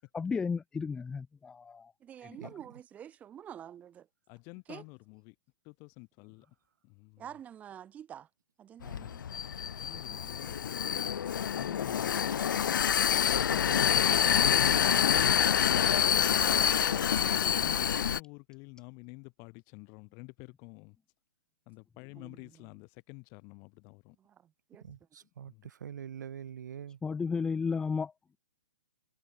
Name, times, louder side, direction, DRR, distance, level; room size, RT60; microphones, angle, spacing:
voice 1, 0.1-1.9 2.2-2.5 27.0-28.4, left 5 dB, 5° left, 1.0 m, -34 dB
voice 2, 2.0-4.1 4.7-4.8 7.2-8.3 8.6-9.2 10.1-10.6 16.3-17.0 22.2-22.7 24.2-24.9, right 9 dB, 15° right, 3.9 m, -48 dB
voice 3, 4.3-5.3 5.7-6.4 6.8-7.2 9.0-9.1 9.8-10.9 11.2-12.8 17.1-21.0 21.7-24.2 25.4-25.7, left 32 dB, 25° left, 3.1 m, -49 dB
Vehicle, 8.8-18.2, left 8 dB, 70° left, 0.6 m, -27 dB
voice 4, 24.8-27.0, right 9 dB, 60° right, 1.3 m, -44 dB
hypercardioid pair, 160°, 11 cm